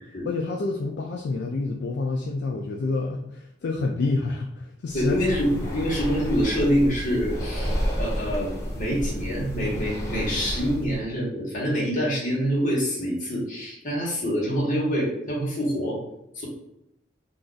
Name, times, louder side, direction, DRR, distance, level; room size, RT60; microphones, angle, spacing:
voice 1, 0.2-5.2, left 3 dB, 65° left, 1 dB, 0.3 m, -28 dB
voice 2, 4.9-16.0 16.3-16.5, equal, 45° left, -5 dB, 1.1 m, -26 dB
Breathing, 4.9-11.0, equal, 15° left, 0.7 m, -30 dB
2.5 x 2.4 x 3.8 m, 0.82 s
head